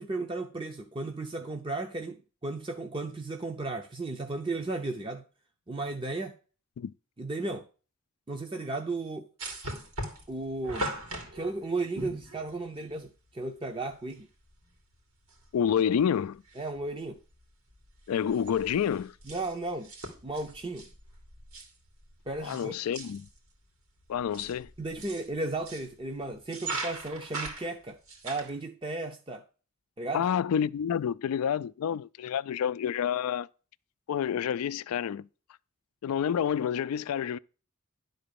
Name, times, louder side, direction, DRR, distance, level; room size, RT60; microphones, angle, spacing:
voice 1, 0.0-5.2 5.7-6.3 7.2-7.7 8.3-9.3 10.3-10.9 11.3-14.3 16.6-17.2 19.3-19.9 20.2-20.9 22.3-22.8 24.8-28.0 28.2-29.4 30.0-30.3, right 2 dB, 25° right, 0.6 m, -35 dB
sound 1, 9.4-13.0 14.1-14.2 14.5-14.6 15.3-15.7 16.0-16.8 17.2-17.4 17.7-22.7 22.9-23.4 24.0-25.9 26.4-28.5, right 2 dB, 85° right, 2.6 m, -40 dB
voice 2, 15.5-16.4 18.1-19.2 22.4-23.3 24.1-24.7 30.1-33.5 34.1-35.3 36.0-37.4, left 8 dB, 90° left, 0.3 m, -28 dB
11.0 x 3.9 x 6.8 m
head